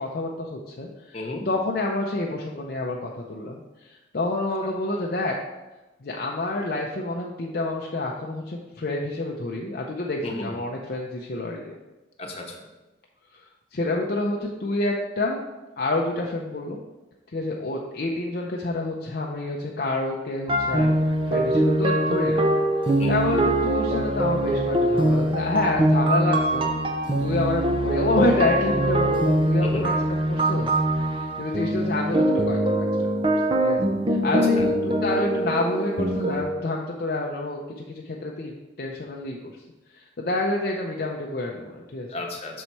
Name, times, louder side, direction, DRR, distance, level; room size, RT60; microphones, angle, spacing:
voice 1, 0.0-1.2 1.5-5.3 6.0-11.7 13.3-13.4 13.7-15.4 15.8-16.8 17.3-20.9 21.3-22.4 23.1-26.7 27.2-33.1 33.6-33.8 34.1-37.6 37.9-39.5 39.9-42.1, left 2 dB, 50° left, 0 dB, 0.5 m, -28 dB
voice 2, 1.1-1.5 10.2-10.5 12.2-12.6 23.0-23.2 29.6-29.9 34.5-34.7 42.1-42.6, left 2 dB, 30° left, 0 dB, 0.9 m, -33 dB
sound 1, 20.5-36.4, right 1 dB, 25° right, 0.5 m, -23 dB
6.4 x 4.2 x 4.5 m, 1.1 s
head